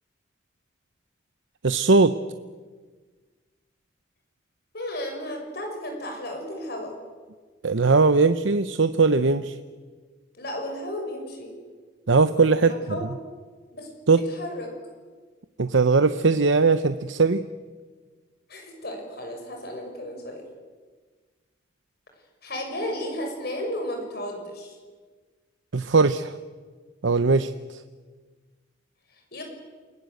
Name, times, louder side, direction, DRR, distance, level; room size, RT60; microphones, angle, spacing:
voice 1, 1.6-2.2 7.6-9.5 12.1-12.7 14.1-14.2 15.6-17.4 25.7-26.3 27.0-27.5, right 4 dB, 75° right, 11 dB, 0.8 m, -19 dB
voice 2, 4.7-6.9 10.3-11.5 12.6-13.1 13.7-13.9 14.1-14.7 18.5-20.4 22.4-24.8 29.1-29.4, left 1 dB, 55° left, 3 dB, 6.6 m, -34 dB
28.0 x 20.0 x 8.0 m, 1.4 s
head